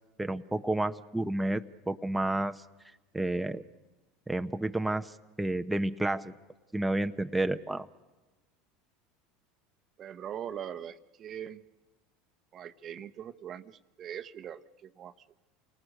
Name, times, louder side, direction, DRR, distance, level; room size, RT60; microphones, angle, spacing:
voice 1, 0.2-2.6 3.1-3.6 4.3-6.3 6.7-7.9, right 1 dB, 5° right, 7 dB, 0.8 m, -30 dB
voice 2, 10.0-11.6 12.5-15.4, right 9 dB, 40° right, 12 dB, 1.0 m, -42 dB
28.0 x 19.5 x 6.5 m, 1.1 s
supercardioid pair, 100°, 0 cm